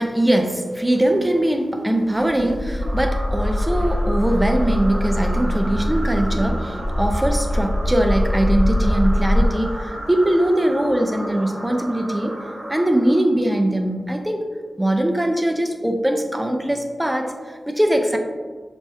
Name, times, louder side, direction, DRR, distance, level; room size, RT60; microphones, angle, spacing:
voice 1, 0.0-12.4 12.7-14.5 14.8-18.2, right 1 dB, 10° right, 4 dB, 0.4 m, -21 dB
sound 1, 2.2-9.5, left 1 dB, 80° left, 0.9 m, -22 dB
sound 2, 2.8-13.5, right 1 dB, 55° right, 0.9 m, -34 dB
4.2 x 3.2 x 2.2 m, 1.5 s
wide cardioid pair, 100°, 0 cm